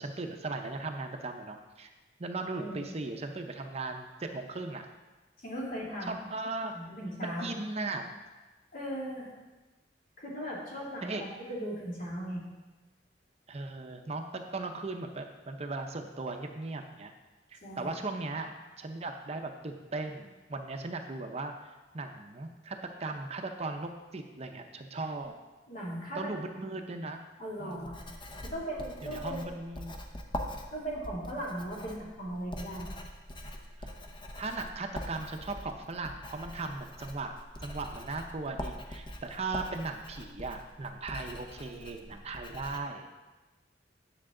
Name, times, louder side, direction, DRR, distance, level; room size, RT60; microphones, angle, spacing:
voice 1, 0.0-1.9 2.2-4.9 6.0-6.7 7.2-8.2 11.0-11.2 13.5-17.1 17.5-21.5 21.9-25.3 26.2-27.2 27.6-27.9 29.0-30.0 33.8-33.9 34.4-37.3 37.6-43.1, right 3 dB, 35° right, 5 dB, 0.6 m, -38 dB
voice 2, 5.4-6.2 6.7-7.5 8.7-9.3 10.2-12.4 17.6-17.9 25.7-26.3 27.4-27.9 28.3-29.5 30.7-32.9, right 1 dB, 50° left, -5 dB, 2.6 m, -38 dB
Writing, 27.7-42.8, equal, 30° left, 0.8 m, -43 dB
9.9 x 6.7 x 3.8 m, 1.2 s
head